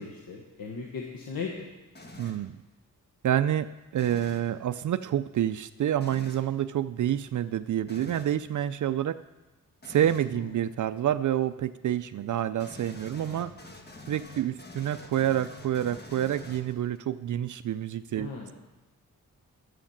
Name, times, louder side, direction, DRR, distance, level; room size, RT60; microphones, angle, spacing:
voice 1, 0.0-1.7 10.3-10.5 18.2-18.5, left 5 dB, 85° left, -1 dB, 1.5 m, -37 dB
sound 1, 2.0-2.5 3.9-4.5 6.0-6.5 7.9-8.4 9.8-10.3 12.6-17.0, left 1 dB, 30° left, 1.4 m, -46 dB
voice 2, 2.2-2.5 3.2-3.7 3.9-9.1 9.9-13.5 14.1-18.3, right 11 dB, 60° right, 13 dB, 0.4 m, -28 dB
11.5 x 7.2 x 7.3 m, 1.1 s
wide cardioid pair, 115°, 34 cm